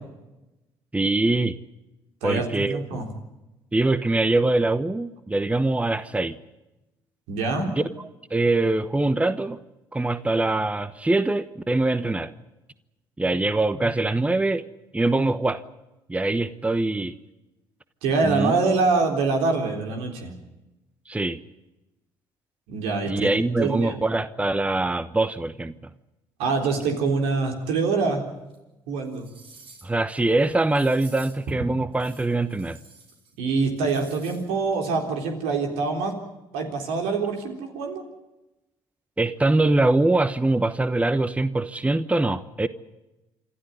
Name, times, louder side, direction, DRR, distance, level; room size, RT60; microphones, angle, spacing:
voice 1, 0.9-1.6 2.2-3.0 3.7-6.4 7.8-9.6 9.9-12.3 13.2-14.6 14.9-15.6 16.1-17.2 18.2-18.5 21.1-21.4 23.0-25.7 29.8-32.8 39.2-42.7, right 2 dB, 15° right, 13 dB, 1.0 m, -23 dB
voice 2, 2.2-3.1 7.3-7.7 18.0-20.3 22.7-23.3 23.6-24.0 26.4-28.2 28.9-29.3 33.4-36.2 36.5-38.0, right 4 dB, 80° right, 3 dB, 3.7 m, -25 dB
sound 1, 28.5-28.6 29.0-30.0 30.7-31.5 31.9-33.3 33.6-34.5 34.8-34.9, right 4 dB, 65° right, 5.6 m, -50 dB
27.0 x 13.0 x 9.7 m, 0.99 s
supercardioid pair, 65°, 10 cm